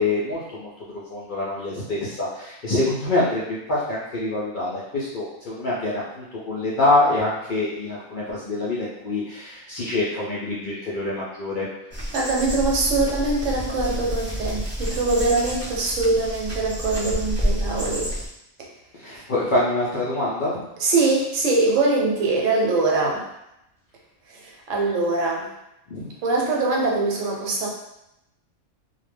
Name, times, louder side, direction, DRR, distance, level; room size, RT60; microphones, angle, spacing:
voice 1, 0.0-11.7 18.9-20.5 25.9-26.1, left 2 dB, 60° left, -7 dB, 0.5 m, -25 dB
sound 1, 11.9-18.3, equal, 15° right, 0.8 m, -29 dB
voice 2, 12.1-18.1 20.8-23.2 24.3-25.5 26.2-27.7, right 3 dB, 75° right, -2 dB, 1.0 m, -23 dB
2.3 x 2.0 x 3.3 m, 0.86 s
omnidirectional pair, 1.3 m